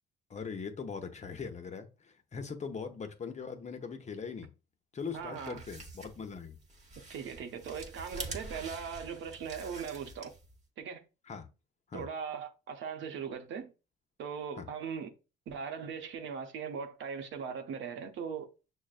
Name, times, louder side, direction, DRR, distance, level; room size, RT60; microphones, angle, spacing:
voice 1, 0.3-4.5 4.9-6.6 11.3-11.5 11.9-12.1 14.6-14.7, left 5 dB, 35° left, 0.6 m, -41 dB
sound 1, 5.1-10.6, right 3 dB, 35° right, 0.9 m, -46 dB
voice 2, 5.1-5.6 7.1-10.3 10.8-11.1 11.9-13.7 14.2-15.1 15.5-18.5, right 6 dB, 75° right, 0.7 m, -39 dB
6.2 x 2.1 x 2.4 m
cardioid pair, 90°, 20 cm